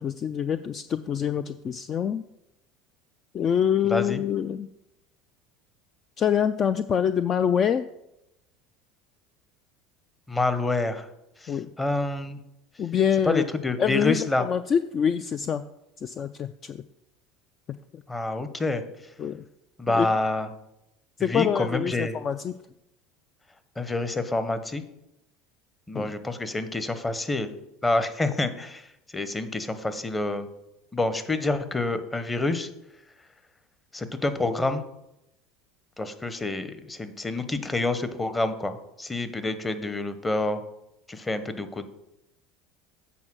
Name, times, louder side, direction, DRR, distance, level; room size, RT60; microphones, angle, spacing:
voice 1, 0.0-2.2 3.3-4.7 6.2-7.8 11.5-11.7 12.8-13.4 13.8-15.6 16.0-16.8 17.9-18.0 19.2-19.4 19.9-20.1 21.2-22.6 25.9-26.1, left 8 dB, 40° left, 12 dB, 0.3 m, -25 dB
voice 2, 3.8-4.2 10.3-11.1 11.4-12.4 13.2-14.4 18.1-18.8 19.8-20.5 21.2-22.1 23.8-24.8 25.9-27.5 27.8-30.5 30.9-32.7 33.9-34.8 36.0-40.6 41.1-41.9, left 2 dB, 15° left, 11 dB, 0.9 m, -27 dB
8.3 x 4.5 x 6.2 m, 0.85 s
hypercardioid pair, 85°, 0 cm